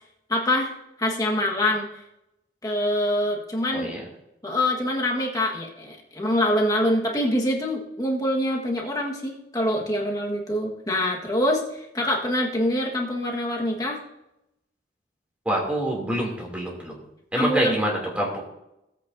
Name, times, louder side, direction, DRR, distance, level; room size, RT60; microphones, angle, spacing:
voice 1, 0.3-0.7 1.0-1.9 2.6-3.9 4.4-14.0 17.3-17.8, left 1 dB, 20° left, -1 dB, 1.5 m, -25 dB
voice 2, 15.4-17.0 17.3-18.4, equal, 5° right, -2 dB, 2.7 m, -26 dB
16.5 x 8.3 x 2.7 m, 0.86 s
head